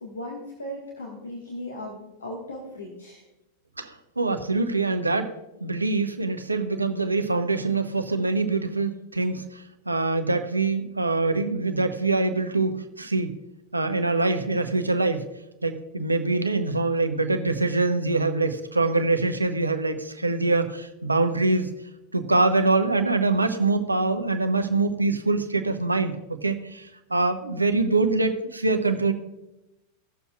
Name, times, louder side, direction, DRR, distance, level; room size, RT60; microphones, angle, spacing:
voice 1, 0.0-3.2, left 1 dB, 75° left, -1 dB, 1.4 m, -37 dB
voice 2, 3.8-5.3 5.6-13.4 13.7-15.2 15.6-21.7 22.1-29.1, right 3 dB, 80° right, 7 dB, 0.8 m, -24 dB
17.0 x 6.9 x 2.3 m, 0.94 s
figure-of-eight pair, 90°, 0 cm